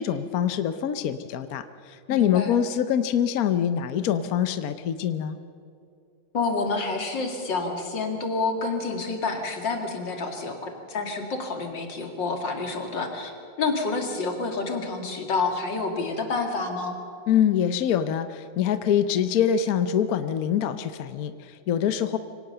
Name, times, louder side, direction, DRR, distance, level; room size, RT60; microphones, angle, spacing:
voice 1, 0.0-5.4 17.3-22.2, left 9 dB, 60° left, 11 dB, 1.1 m, -24 dB
voice 2, 2.1-2.6 6.3-13.3 13.6-17.0, left 3 dB, 75° left, 4 dB, 3.0 m, -28 dB
24.5 x 18.0 x 6.8 m, 2.5 s
omnidirectional pair, 2.0 m